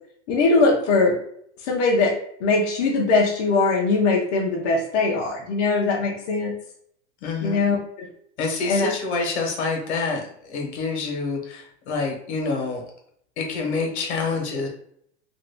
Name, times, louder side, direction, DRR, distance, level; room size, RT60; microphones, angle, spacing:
voice 1, 0.3-1.1 1.6-2.1 2.4-6.5 7.4-8.1 8.7-8.9, left 3 dB, 35° left, -2 dB, 0.5 m, -21 dB
voice 2, 7.2-7.7 8.4-12.8 13.4-14.7, left 4 dB, 65° left, 2 dB, 1.1 m, -27 dB
2.8 x 2.6 x 3.3 m, 0.69 s
supercardioid pair, 165°, 36 cm